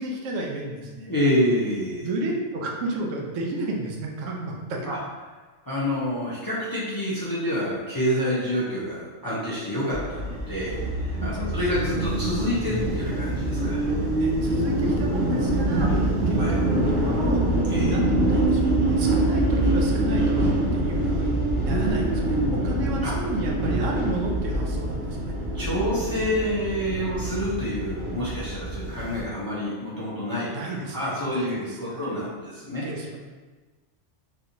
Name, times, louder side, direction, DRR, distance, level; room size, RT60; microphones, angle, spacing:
voice 1, 0.0-1.1 2.0-4.9 11.3-11.6 14.1-18.7 19.0-25.3 30.5-32.1 32.8-33.2, right 1 dB, 90° right, 0 dB, 1.0 m, -32 dB
voice 2, 1.1-2.1 4.8-5.0 5.6-13.8 15.8-15.9 16.4-16.5 17.7-17.9 21.7-22.5 23.0-23.1 25.5-30.5 30.9-32.8, equal, 30° left, -8 dB, 0.4 m, -28 dB
sound 1, 9.9-29.2, right 1 dB, 60° right, 0.8 m, -25 dB
3.3 x 2.8 x 2.6 m, 1.3 s
omnidirectional pair, 1.3 m